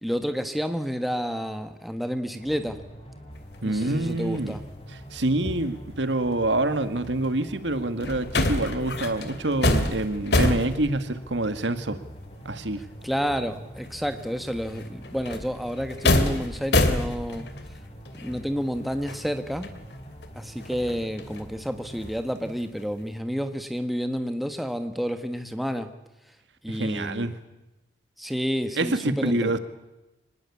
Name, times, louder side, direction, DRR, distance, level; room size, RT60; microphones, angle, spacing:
voice 1, 0.0-2.8 3.6-4.6 13.0-17.5 18.2-19.7 20.3-25.9 26.6-27.3 28.2-29.6, equal, ahead, 7 dB, 1.4 m, -30 dB
sound 1, 2.4-22.2, equal, 30° left, 4.8 m, -45 dB
sound 2, 3.3-3.6 3.8-6.1 6.5-13.0 13.4-13.5 13.8-17.8 18.1-21.5 21.8-23.0, left 1 dB, 70° left, 2.7 m, -28 dB
voice 2, 3.6-4.6 4.9-12.0 12.5-12.8 26.7-27.3 28.8-29.6, right 2 dB, 85° right, 10 dB, 1.9 m, -26 dB
25.0 x 20.0 x 8.5 m, 1.0 s
head